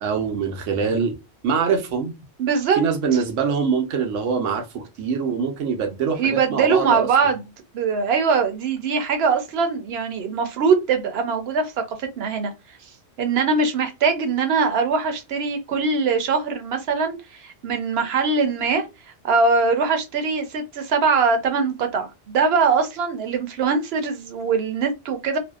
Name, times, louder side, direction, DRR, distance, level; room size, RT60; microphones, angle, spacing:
voice 1, 0.0-1.2 1.4-2.1 2.8-7.1, right 6 dB, 90° right, 1.0 m, -24 dB
voice 2, 2.4-2.8 6.2-7.4 7.7-11.7 12.0-12.5 13.2-18.8 19.2-25.4, right 5 dB, 65° right, 0.8 m, -22 dB
2.5 x 2.1 x 2.3 m
omnidirectional pair, 1.2 m